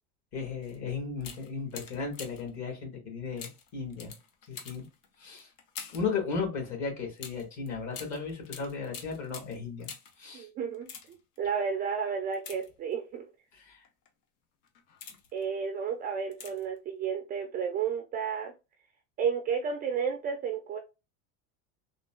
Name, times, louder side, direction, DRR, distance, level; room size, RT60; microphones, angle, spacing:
voice 1, 0.3-4.1 4.5-4.8 5.2-5.5 5.9-9.9 10.2-10.5 13.6-13.8, left 5 dB, 45° left, 1.8 m, -35 dB
sound 1, 0.6-0.8 1.2-2.6 3.4-6.2 7.2-10.2 10.7-11.4 12.3-13.2 13.8-14.1 14.6-15.4 16.3-16.8 17.0-17.1, left 6 dB, 75° left, 0.9 m, -46 dB
voice 2, 10.3-10.9 11.4-13.3 15.3-18.5 19.2-20.8, right 6 dB, 25° right, 0.3 m, -32 dB
3.7 x 2.3 x 2.3 m
supercardioid pair, 130°, 39 cm